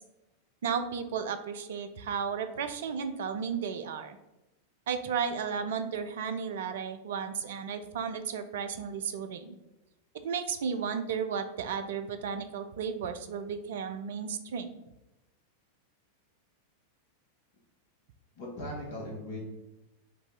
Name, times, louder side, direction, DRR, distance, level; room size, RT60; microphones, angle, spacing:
voice 1, 0.6-4.2 4.9-9.6 10.2-14.7, right 6 dB, 60° right, 9 dB, 0.4 m, -34 dB
voice 2, 18.3-19.5, left 1 dB, 55° left, -3 dB, 1.6 m, -38 dB
4.8 x 2.7 x 3.7 m, 0.98 s
figure-of-eight pair, 90°, 0 cm